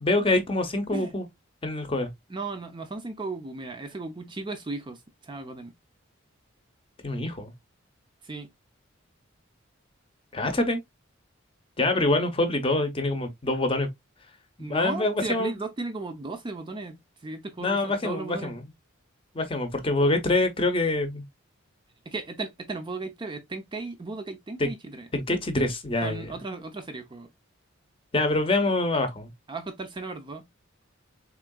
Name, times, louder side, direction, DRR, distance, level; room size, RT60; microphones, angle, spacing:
voice 1, 0.0-1.2 1.6-2.1 7.0-7.5 10.3-10.8 11.8-13.9 14.6-15.5 17.6-18.6 19.3-21.2 24.6-24.7 25.1-26.3 28.1-29.3, left 2 dB, 25° left, 0.7 m, -25 dB
voice 2, 2.3-5.7 8.2-8.5 14.6-18.6 22.1-25.1 26.0-27.3 29.5-30.5, right 3 dB, 25° right, 0.4 m, -36 dB
3.6 x 3.4 x 2.2 m
head